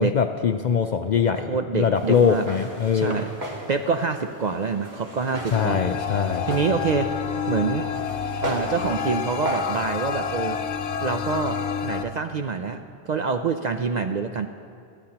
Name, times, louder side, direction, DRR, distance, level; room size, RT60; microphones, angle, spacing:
voice 1, 0.0-3.3 5.5-6.5, left 7 dB, 55° left, 6 dB, 0.5 m, -22 dB
voice 2, 1.5-2.5 2.9-3.3 3.7-5.8 6.5-7.1 7.5-7.9 8.4-10.6 11.0-14.5, right 5 dB, 55° right, 6 dB, 0.5 m, -26 dB
Walk footsteps, 1.9-9.8, right 1 dB, 40° right, 1.9 m, -36 dB
sound 1, 5.5-12.0, left 6 dB, 85° left, 1.0 m, -29 dB
27.0 x 9.1 x 2.9 m, 2.6 s
omnidirectional pair, 1.1 m